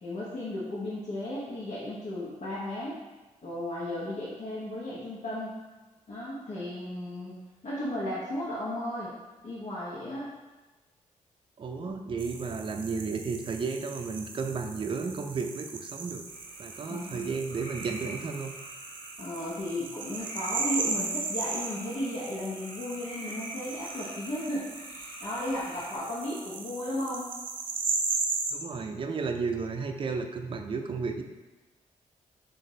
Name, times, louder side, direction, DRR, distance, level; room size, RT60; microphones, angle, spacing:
voice 1, 0.0-3.0 3.4-5.6 6.1-7.3 7.6-9.1 9.4-10.3 16.9-17.3 19.2-27.3, left 1 dB, 60° left, -7 dB, 1.0 m, -35 dB
voice 2, 11.6-16.2 16.6-18.5 28.5-31.2, right 4 dB, 40° right, 5 dB, 0.4 m, -33 dB
sound 1, 12.2-28.5, right 4 dB, 90° right, 0.5 m, -37 dB
sound 2, 16.3-26.0, equal, 35° left, 1.4 m, -46 dB
6.4 x 2.6 x 3.2 m, 1.2 s
cardioid pair, 90°, 13 cm